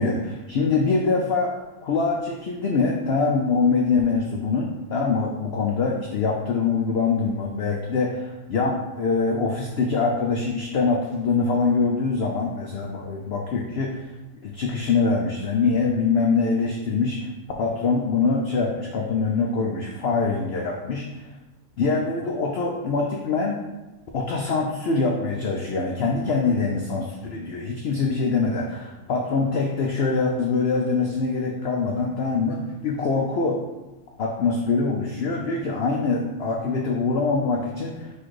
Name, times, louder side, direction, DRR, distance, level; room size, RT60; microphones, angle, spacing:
voice 1, 0.0-1.5 1.8-14.1 14.4-17.3 17.6-21.3 21.8-23.7 24.1-33.6 34.2-38.1, left 4 dB, 80° left, 0 dB, 0.5 m, -24 dB
4.3 x 2.4 x 4.6 m, 1.1 s
omnidirectional pair, 1.6 m